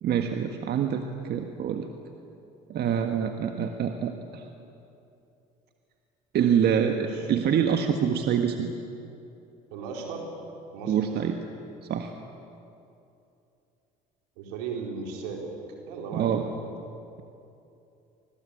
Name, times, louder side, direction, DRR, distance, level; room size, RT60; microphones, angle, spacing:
voice 1, 0.0-1.9 2.7-4.5 6.3-8.7 10.9-11.4 11.9-12.1 16.1-16.4, right 8 dB, 60° right, 5 dB, 1.6 m, -26 dB
voice 2, 9.7-10.3 10.7-11.0 14.4-15.5 15.9-16.5, right 5 dB, 85° right, 1 dB, 4.5 m, -36 dB
25.0 x 20.5 x 8.8 m, 2.7 s
supercardioid pair, 70°, 19 cm